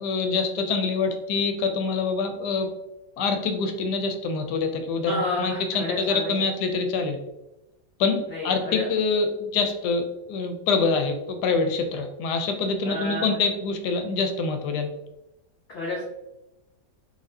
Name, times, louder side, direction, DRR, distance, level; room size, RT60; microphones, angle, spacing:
voice 1, 0.0-2.7 3.2-7.2 8.0-14.9, left 4 dB, 80° left, 6 dB, 1.1 m, -25 dB
voice 2, 5.1-6.3 8.3-8.9 12.8-13.3 15.7-16.0, left 2 dB, 50° left, -4 dB, 0.7 m, -30 dB
4.1 x 2.7 x 2.6 m, 0.95 s
omnidirectional pair, 1.8 m